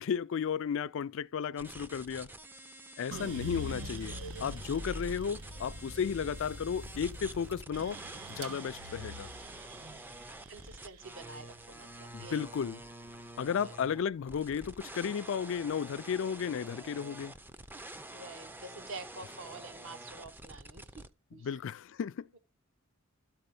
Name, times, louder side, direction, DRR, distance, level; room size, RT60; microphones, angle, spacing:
voice 1, 0.0-2.3 3.0-8.0 8.3-9.3 12.1-12.8 13.4-17.3 21.4-22.3, left 7 dB, 60° left, 0.3 m, -34 dB
sound 1, 1.6-21.1, right 1 dB, 10° right, 0.4 m, -48 dB
sound 2, 3.1-13.3 13.8-14.5, equal, 90° right, 1.1 m, -44 dB
voice 2, 10.5-12.5 13.6-13.7 18.1-21.1 21.3-21.6, right 3 dB, 60° right, 1.1 m, -48 dB
12.5 x 4.3 x 5.3 m
head